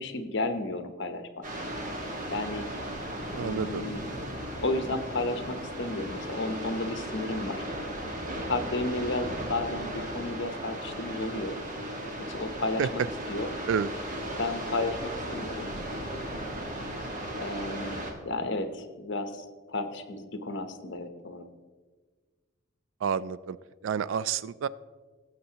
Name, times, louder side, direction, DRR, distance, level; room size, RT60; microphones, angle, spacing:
voice 1, 0.0-1.4 2.3-2.7 3.4-4.1 4.6-7.6 8.5-11.6 12.2-13.0 13.3-13.5 14.4-15.7 17.4-21.5, left 2 dB, 60° left, 8 dB, 0.8 m, -33 dB
sound 1, 1.4-18.1, right 1 dB, 40° right, 1.5 m, -36 dB
voice 2, 3.4-3.9 12.8-12.9 13.7-13.9 23.0-23.6 23.8-24.7, right 7 dB, 65° right, 18 dB, 0.3 m, -29 dB
17.0 x 7.9 x 2.9 m, 1.4 s
head